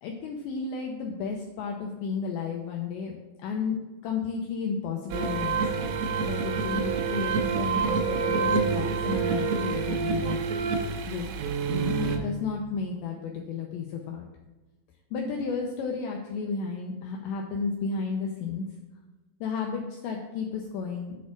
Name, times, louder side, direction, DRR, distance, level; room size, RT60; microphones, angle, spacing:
voice 1, 0.0-3.1 3.4-10.4 11.1-11.3 11.7-14.3 15.1-18.6 19.4-21.2, left 5 dB, 85° left, 1 dB, 2.5 m, -33 dB
sound 1, 5.1-12.2, right 5 dB, 90° right, 3.6 m, -27 dB
8.2 x 4.4 x 7.2 m, 1.2 s
omnidirectional pair, 5.9 m